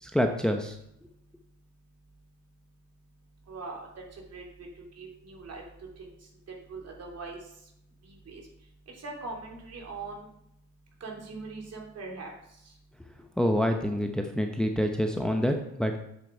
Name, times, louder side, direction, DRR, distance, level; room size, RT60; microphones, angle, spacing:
voice 1, 0.0-0.8 13.4-16.0, equal, ahead, 4 dB, 0.9 m, -27 dB
voice 2, 3.5-5.6 6.0-7.5 8.0-8.4 8.9-10.3 11.0-12.7, right 3 dB, 55° right, 0 dB, 3.0 m, -42 dB
7.9 x 7.6 x 4.5 m, 0.77 s
cardioid pair, 90°, 30 cm